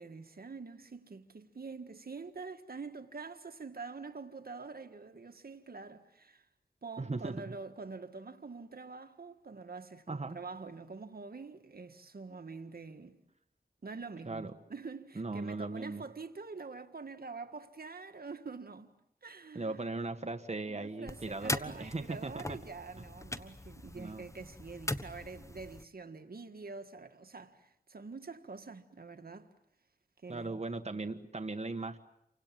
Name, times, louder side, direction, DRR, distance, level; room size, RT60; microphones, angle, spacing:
voice 1, 0.0-6.5 6.8-13.2 13.8-18.9 19.2-19.9 20.7-29.5 30.2-31.1, right 4 dB, 70° right, 1.7 m, -46 dB
voice 2, 7.0-7.4 10.1-10.4 14.3-14.5 15.2-16.0 19.5-22.6 23.9-24.2 30.3-32.0, right 3 dB, 45° right, 1.5 m, -38 dB
sound 1, 21.1-25.8, left 1 dB, 20° left, 1.2 m, -41 dB
29.5 x 25.0 x 7.6 m
wide cardioid pair, 60°, 16 cm